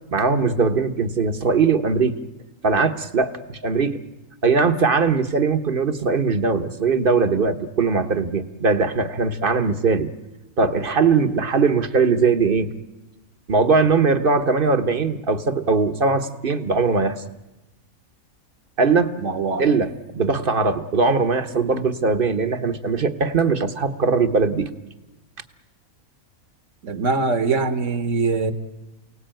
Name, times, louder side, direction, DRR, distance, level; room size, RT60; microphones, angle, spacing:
voice 1, 0.1-2.2 2.6-4.0 4.4-10.1 10.6-12.7 13.5-17.2 18.8-19.2 19.6-24.7, right 4 dB, 40° right, 11 dB, 1.3 m, -20 dB
voice 2, 19.2-19.6 26.8-28.5, right 4 dB, 55° right, 11 dB, 1.6 m, -22 dB
28.5 x 18.0 x 9.0 m, 1.0 s
omnidirectional pair, 1.5 m